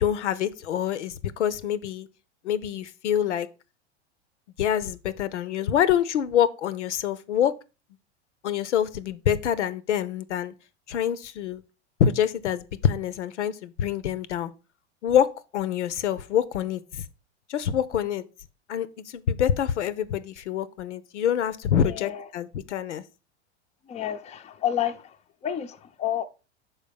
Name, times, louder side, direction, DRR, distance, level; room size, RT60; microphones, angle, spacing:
voice 1, 0.0-2.1 2.4-3.5 4.6-7.6 8.4-10.5 10.9-11.6 12.0-14.5 15.0-17.0 17.5-18.2 18.7-18.9 19.1-23.0, left 9 dB, 85° left, 0.6 m, -26 dB
voice 2, 21.8-22.3 23.9-25.2 25.4-26.2, left 10 dB, 20° left, 0.6 m, -30 dB
5.6 x 4.5 x 5.1 m
hypercardioid pair, 100°, 35 cm